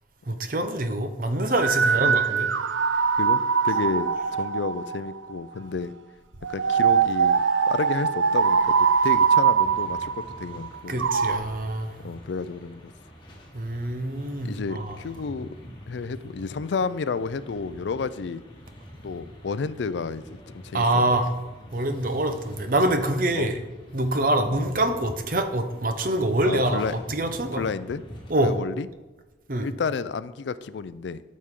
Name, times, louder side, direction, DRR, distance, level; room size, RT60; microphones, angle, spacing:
voice 1, 0.3-2.5 10.9-11.9 13.5-15.0 20.7-21.3 21.7-23.6 23.9-27.6 28.3-28.5 29.5-29.7, right 1 dB, 45° right, 7 dB, 0.8 m, -25 dB
sound 1, 1.6-5.4 6.4-11.4, right 6 dB, 85° right, 0.5 m, -22 dB
voice 2, 1.8-2.2 3.1-5.9 6.5-11.1 12.0-12.9 14.4-15.5 15.9-18.4 19.0-21.1 23.4-23.5 26.5-26.9 27.5-28.0 28.4-28.9 29.6-31.2, left 5 dB, 70° left, 15 dB, 0.4 m, -31 dB
sound 2, 9.6-28.3, equal, 25° left, 1.5 m, -45 dB
12.5 x 6.3 x 3.7 m, 1.1 s
head